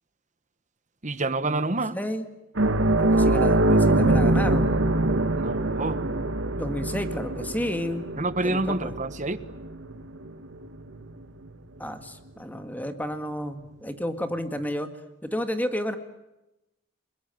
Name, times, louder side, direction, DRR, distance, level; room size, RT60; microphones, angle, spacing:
voice 1, 1.0-2.0 5.3-6.0 8.2-9.4, right 2 dB, 40° right, 1.3 m, -28 dB
voice 2, 1.9-2.3 3.0-4.7 6.6-8.1 8.4-8.9 11.8-14.9 15.2-16.0, equal, 10° left, 1.9 m, -31 dB
sound 1, 2.6-11.5 11.8-12.0 14.1-14.2, right 2 dB, 85° right, 1.5 m, -24 dB
30.0 x 21.0 x 9.2 m
head